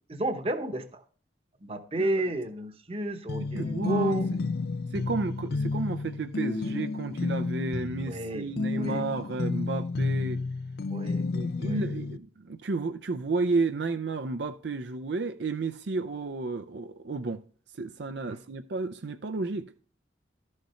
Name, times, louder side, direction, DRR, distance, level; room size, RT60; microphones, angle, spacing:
voice 1, 0.1-1.0 1.6-4.3 8.1-8.4 8.7-9.0 10.9-11.3 11.6-11.8 18.3-18.4, right 1 dB, 30° right, 1.0 m, -32 dB
sound 1, 3.3-12.2, left 3 dB, 55° left, 0.4 m, -31 dB
voice 2, 3.5-4.4 4.9-10.4 11.3-17.4 17.7-19.7, right 3 dB, 65° right, 0.5 m, -32 dB
12.5 x 6.5 x 4.3 m
head